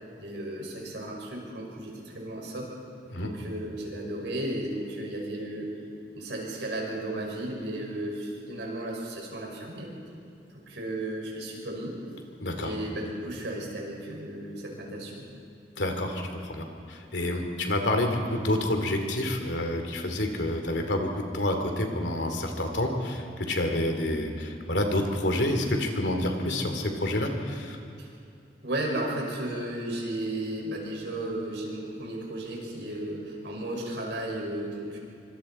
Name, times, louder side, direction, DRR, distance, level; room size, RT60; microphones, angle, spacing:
voice 1, 0.2-2.7 3.2-5.7 6.1-9.9 10.5-11.9 12.6-15.3 28.0-28.1 28.6-35.0, right 1 dB, 80° right, -2 dB, 5.8 m, -34 dB
voice 2, 12.4-12.7 15.8-27.8, left 1 dB, 80° left, 4 dB, 2.7 m, -28 dB
25.5 x 25.0 x 4.4 m, 2.5 s
head